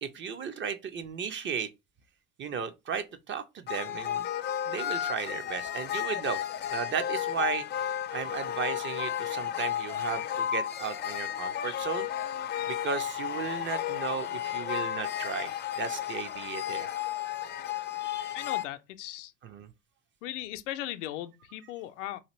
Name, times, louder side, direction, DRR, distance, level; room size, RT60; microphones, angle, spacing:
voice 1, 0.0-1.7 2.4-4.3 4.7-6.4 6.7-12.1 12.7-15.5 15.8-16.9 19.5-19.7, right 7 dB, 35° right, 0.5 m, -35 dB
sound 1, 3.7-18.6, left 11 dB, 30° left, 0.4 m, -33 dB
voice 2, 18.3-19.3 20.2-22.2, left 13 dB, 85° left, 0.5 m, -38 dB
2.7 x 2.5 x 3.0 m
hypercardioid pair, 75°, 35 cm